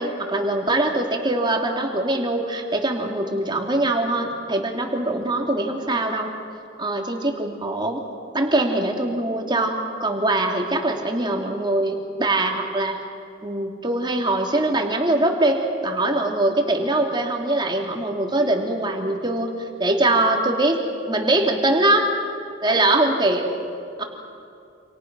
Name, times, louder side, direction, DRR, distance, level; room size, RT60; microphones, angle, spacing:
voice 1, 0.0-6.3 6.8-8.0 8.3-13.0 13.4-19.5 19.8-22.1 22.6-23.5 24.0-24.1, right 2 dB, 25° right, 2 dB, 2.8 m, -22 dB
29.0 x 27.5 x 6.1 m, 2.5 s
head